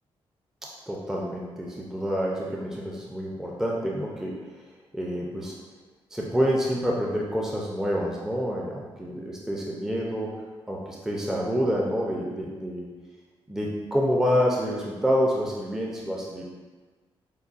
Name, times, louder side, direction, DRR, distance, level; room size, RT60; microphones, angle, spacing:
voice 1, 0.9-4.5 4.9-5.5 6.1-12.8 13.5-16.4, equal, 5° right, -3 dB, 0.5 m, -28 dB
5.3 x 2.1 x 2.4 m, 1.4 s
cardioid pair, 75°, 10 cm